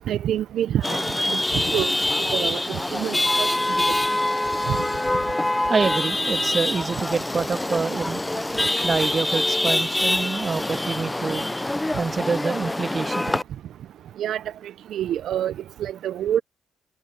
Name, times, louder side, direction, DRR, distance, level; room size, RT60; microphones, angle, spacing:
voice 1, 0.1-1.9 2.3-3.6 4.7-4.8 14.2-14.4 14.9-15.5 15.8-16.4, right 11 dB, 65° right, 0.9 m, -27 dB
Chatter / Vehicle horn car horn honking / Traffic noise roadway noise, 0.8-13.4, left 1 dB, 15° left, 0.6 m, -25 dB
voice 2, 5.7-8.2 8.8-11.5 12.0-13.3, right 4 dB, 40° right, 2.5 m, -26 dB
hypercardioid pair, 45°, 0 cm